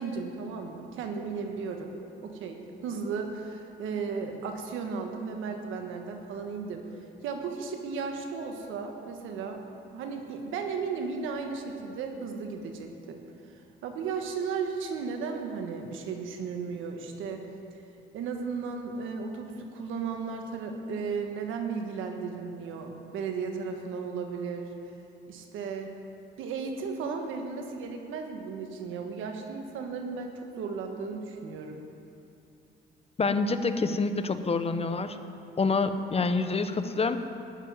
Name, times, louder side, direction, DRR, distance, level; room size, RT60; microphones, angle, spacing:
voice 1, 0.0-1.9 2.2-6.8 7.2-9.6 9.9-13.2 13.8-17.5 18.1-24.7 25.3-25.9 26.4-31.8, right 5 dB, 90° right, 4 dB, 1.4 m, -35 dB
voice 2, 33.2-35.2 35.6-37.2, left 4 dB, 30° left, 10 dB, 0.8 m, -27 dB
12.5 x 7.1 x 9.6 m, 2.7 s
cardioid pair, 90°, 20 cm